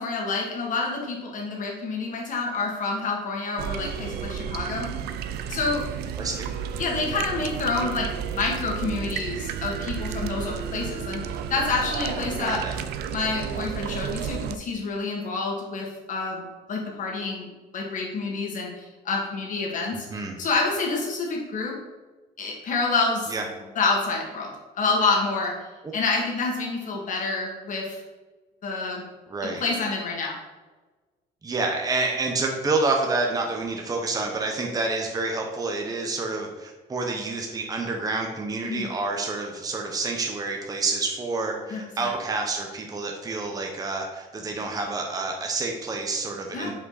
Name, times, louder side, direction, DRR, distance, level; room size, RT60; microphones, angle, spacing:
voice 1, 0.0-4.9 5.5-5.8 6.8-11.2 11.5-12.6 13.1-17.5 17.7-21.7 22.4-23.3 23.7-24.5 24.7-25.5 25.9-28.0 28.6-29.0 29.6-30.4 38.6-38.9 41.7-42.1 46.5-46.7, left 3 dB, 50° left, -1 dB, 1.8 m, -28 dB
sound 1, 3.6-14.6, right 8 dB, 75° right, 0.4 m, -32 dB
voice 2, 6.2-6.5 12.4-12.8 20.1-20.4 23.3-23.4 29.3-29.6 31.4-46.7, right 3 dB, 20° right, 2 dB, 0.8 m, -28 dB
5.4 x 5.0 x 4.1 m, 1.3 s
cardioid pair, 110°, 17 cm